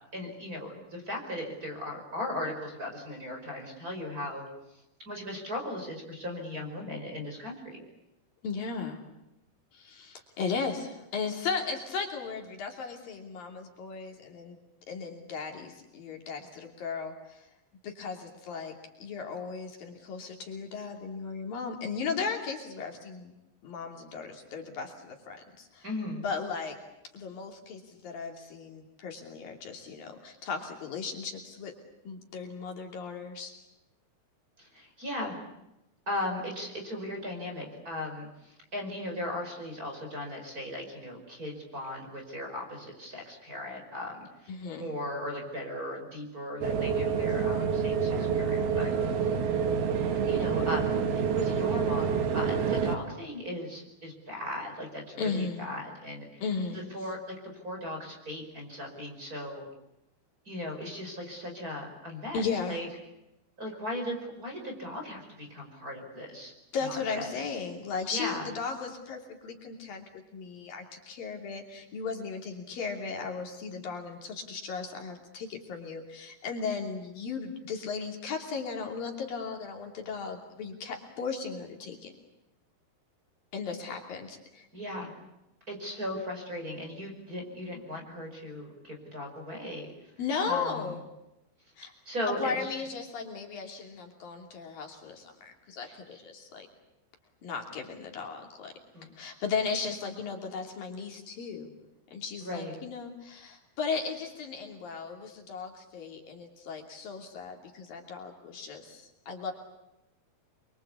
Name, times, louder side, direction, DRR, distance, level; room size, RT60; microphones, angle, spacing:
voice 1, 0.1-4.5 4.7-7.8 25.8-26.2 34.6-35.4 36.1-48.9 49.2-49.4 50.3-51.0 51.3-56.4 56.7-59.7 60.4-62.9 63.6-66.5 66.8-67.4 68.1-68.5 84.7-85.1 85.7-90.1 90.5-90.9 92.0-92.7 95.8-96.0 98.9-99.0 102.4-102.7, left 1 dB, 20° right, 2 dB, 5.2 m, -37 dB
voice 2, 8.4-9.0 9.7-14.6 14.9-17.5 17.8-23.3 23.6-25.9 26.2-26.8 27.1-31.7 32.0-33.5 44.5-44.9 55.2-55.6 56.4-56.9 62.3-62.8 66.7-70.0 70.3-82.1 83.5-84.7 90.2-91.0 91.8-91.9 92.4-96.7 97.4-98.7 99.2-101.7 102.1-109.5, left 5 dB, 60° left, 3 dB, 4.5 m, -36 dB
sound 1, 46.6-53.0, right 6 dB, 70° right, 3.7 m, -27 dB
28.0 x 23.5 x 8.4 m, 0.91 s
omnidirectional pair, 4.7 m